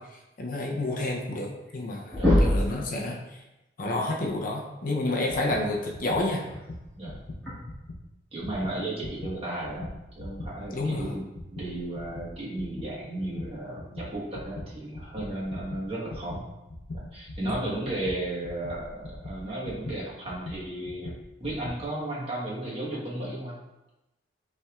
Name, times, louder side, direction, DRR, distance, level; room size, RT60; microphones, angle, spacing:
voice 1, 0.0-3.4 3.8-6.5 10.7-11.1 17.4-17.6, left 2 dB, 50° left, 0 dB, 0.6 m, -30 dB
sound 1, 1.6-1.8 2.1-2.8 4.5-4.6 6.4-6.6 7.4-7.5, left 1 dB, 5° left, 1.4 m, -22 dB
sound 2, 5.3-8.0 8.4-21.9, left 1 dB, 85° left, 0.7 m, -41 dB
voice 2, 8.3-11.2 11.5-16.5 16.9-21.1 21.4-23.6, right 1 dB, 35° right, -6 dB, 1.3 m, -34 dB
5.5 x 3.4 x 2.3 m, 0.96 s
head